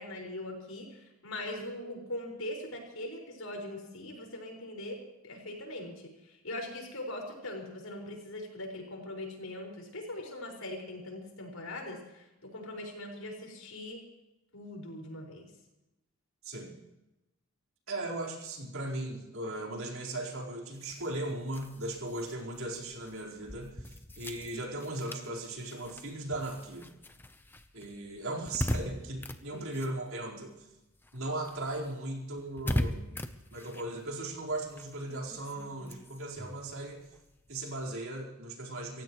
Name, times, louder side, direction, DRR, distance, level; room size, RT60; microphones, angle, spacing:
voice 1, 0.0-5.0 5.2-12.2 12.5-14.0 14.5-15.5 29.5-29.6, left 1 dB, 80° left, 1 dB, 5.6 m, -41 dB
voice 2, 17.9-26.9 27.7-30.5 31.1-33.1 33.5-37.0 37.5-39.0, right 1 dB, 75° right, -2 dB, 4.6 m, -37 dB
sound 1, 20.7-30.6 30.9-37.9, left 1 dB, 10° left, 0.9 m, -40 dB
28.0 x 15.5 x 3.2 m, 0.97 s
head